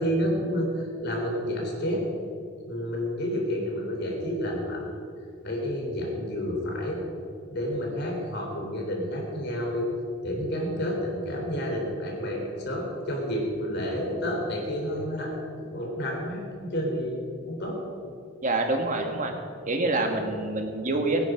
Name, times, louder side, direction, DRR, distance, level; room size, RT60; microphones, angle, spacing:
voice 1, 0.0-2.0 2.7-4.9 5.4-7.0 7.5-9.8 10.2-15.3 15.7-17.2 17.5-17.8, equal, 50° left, 0 dB, 3.9 m, -30 dB
voice 2, 18.4-19.4 19.7-21.2, right 2 dB, 35° right, 4 dB, 1.8 m, -26 dB
23.0 x 10.5 x 5.2 m, 2.3 s
head